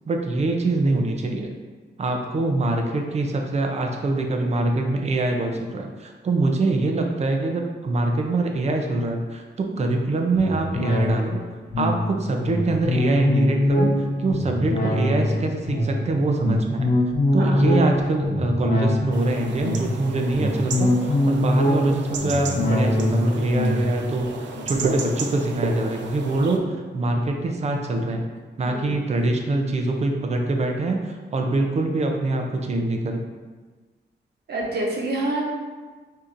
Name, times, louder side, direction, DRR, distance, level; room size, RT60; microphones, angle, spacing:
voice 1, 0.1-1.5 2.0-11.4 11.8-16.9 17.3-28.3 28.6-33.2, right 2 dB, 35° right, 3 dB, 0.5 m, -24 dB
sound 1, 10.4-26.1 26.5-26.6, left 1 dB, 50° left, 0.8 m, -24 dB
voice 2, 17.3-17.7 28.7-29.0 34.5-35.4, right 2 dB, 60° right, -2 dB, 0.9 m, -27 dB
sound 2, 19.1-26.6, right 4 dB, 85° right, 0.5 m, -33 dB
6.5 x 2.8 x 2.5 m, 1.4 s
wide cardioid pair, 140°, 19 cm